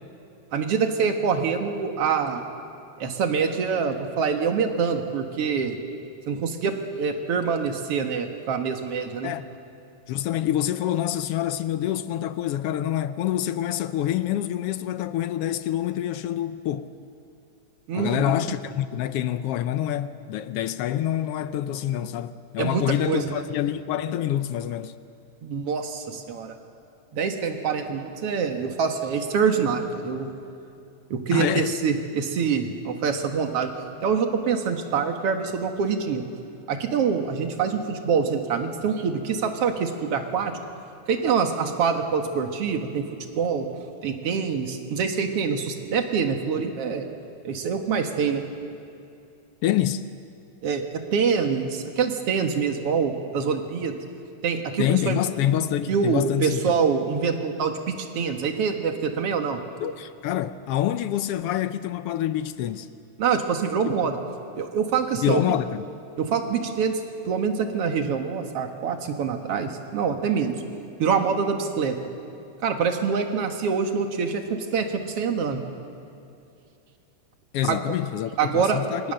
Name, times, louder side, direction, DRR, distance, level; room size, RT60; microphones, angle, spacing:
voice 1, 0.5-2.4 3.0-5.8 6.3-9.3 17.9-18.5 22.6-23.4 25.4-26.6 27.1-30.3 31.1-33.7 34.0-36.2 36.7-40.5 41.1-43.1 43.4-43.7 44.0-47.1 47.4-48.5 50.6-50.8 51.1-54.0 54.4-55.2 55.9-59.6 63.2-64.2 64.6-65.4 66.2-70.5 71.0-72.0 72.6-75.6 77.7-77.9 78.4-78.8, right 6 dB, 55° right, 2.5 m, -25 dB
voice 2, 10.1-16.9 17.9-25.0 31.3-31.7 49.6-50.1 54.8-56.6 59.8-62.9 65.2-65.8 77.5-79.1, left 11 dB, 75° left, 1.4 m, -26 dB
26.5 x 24.5 x 6.7 m
omnidirectional pair, 3.3 m